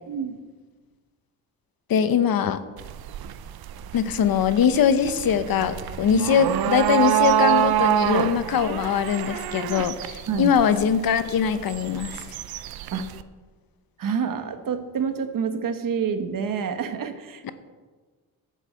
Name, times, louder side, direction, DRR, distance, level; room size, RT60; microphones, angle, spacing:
voice 1, 0.1-0.4 6.1-6.3 10.3-10.5 12.9-13.1 14.0-17.5, right 6 dB, 65° right, 8 dB, 1.3 m, -28 dB
voice 2, 1.9-2.6 3.9-12.2 17.4-17.5, left 7 dB, 70° left, 12 dB, 0.9 m, -22 dB
sound 1, 2.8-13.2, right 11 dB, 80° right, 0.7 m, -26 dB
11.0 x 8.1 x 7.6 m, 1.4 s
wide cardioid pair, 140°, 36 cm